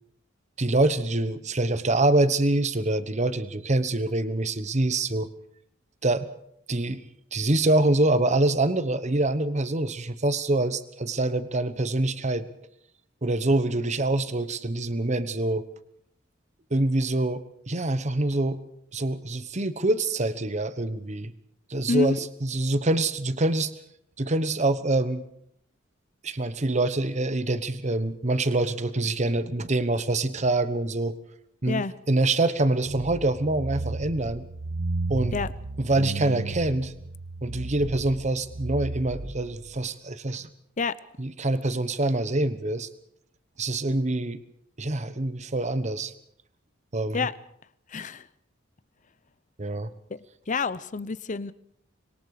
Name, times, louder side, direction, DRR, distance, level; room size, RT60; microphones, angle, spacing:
voice 1, 0.6-5.3 6.0-6.3 6.7-7.0 7.3-12.5 13.2-15.6 16.7-18.6 18.9-21.3 21.7-23.7 24.2-25.3 26.2-31.2 31.6-34.5 35.1-35.4 35.8-36.9 37.4-40.5 41.2-42.9 43.6-44.4 44.8-46.1 46.9-47.3 49.6-49.9, right 2 dB, 35° right, 13 dB, 1.1 m, -25 dB
sound 1, 32.9-39.8, right 3 dB, 70° right, 1.2 m, -34 dB
voice 2, 47.9-48.3 50.5-51.5, left 4 dB, 40° left, 17 dB, 0.7 m, -27 dB
25.5 x 22.0 x 5.0 m, 0.72 s
head